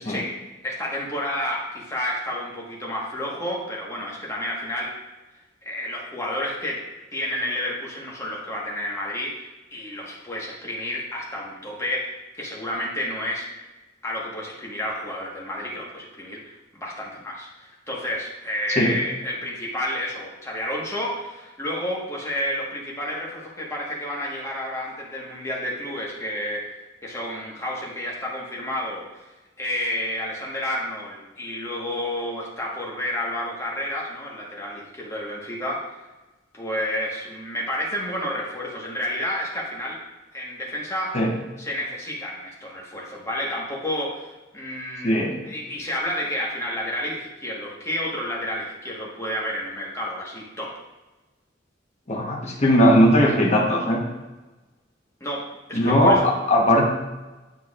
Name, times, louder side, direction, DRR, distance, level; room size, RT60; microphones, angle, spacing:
voice 1, 0.0-5.0 5.6-6.8 7.1-13.5 14.0-26.8 27.0-29.3 29.6-36.0 36.5-40.0 40.3-41.2 41.6-50.8 55.2-56.3, left 1 dB, 15° left, -3 dB, 1.3 m, -30 dB
voice 2, 45.0-45.4 52.1-54.0 55.7-56.9, equal, 35° left, -1 dB, 1.1 m, -19 dB
9.5 x 4.6 x 2.4 m, 1.1 s
head